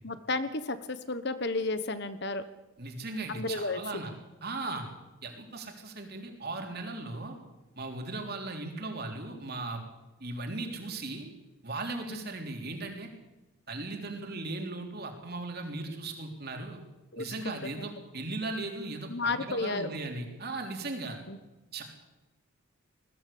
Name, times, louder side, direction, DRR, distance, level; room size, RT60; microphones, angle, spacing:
voice 1, 0.0-2.4 3.3-3.8 12.1-12.3 17.1-17.8 19.1-19.9 21.3-21.4, left 3 dB, 50° left, 12 dB, 1.2 m, -33 dB
voice 2, 2.8-4.1 4.4-4.9 5.2-7.4 7.8-9.8 10.2-11.3 11.6-13.1 13.7-16.8 17.2-21.2 21.7-21.8, right 2 dB, 45° right, 3 dB, 3.6 m, -37 dB
21.0 x 15.0 x 8.6 m, 1.1 s
head